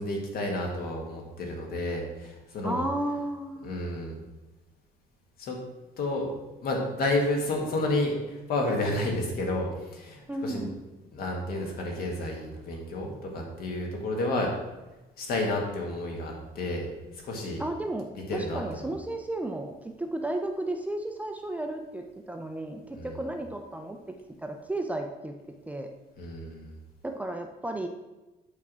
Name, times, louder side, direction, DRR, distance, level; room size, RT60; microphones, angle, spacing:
voice 1, 0.0-2.8 3.6-4.2 5.4-5.5 6.0-6.3 6.6-10.7 11.1-14.5 15.2-16.8 17.2-17.6 18.3-18.9 22.9-23.1 26.2-26.7, left 2 dB, 65° left, 1 dB, 1.8 m, -30 dB
voice 2, 2.6-3.7 10.3-10.8 17.6-25.3 25.7-25.9 27.0-27.9, right 1 dB, 10° right, 4 dB, 0.4 m, -33 dB
8.4 x 3.6 x 6.1 m, 1.1 s
cardioid pair, 160°, 17 cm